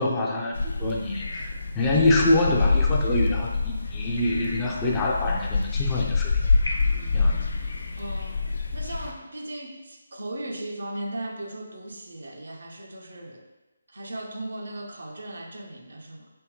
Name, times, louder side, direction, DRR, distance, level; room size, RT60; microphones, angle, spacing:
voice 1, 0.0-6.3 7.1-7.4, left 2 dB, 15° left, -3 dB, 0.4 m, -25 dB
sound 1, 0.5-9.1, left 4 dB, 65° left, 0.5 m, -26 dB
sound 2, 1.8-7.1, left 1 dB, 85° left, 1.0 m, -43 dB
voice 2, 8.0-8.4 8.7-13.4 13.9-16.3, right 1 dB, 70° right, 2 dB, 0.6 m, -37 dB
3.4 x 3.4 x 3.0 m, 1.1 s
figure-of-eight pair, 155°, 0 cm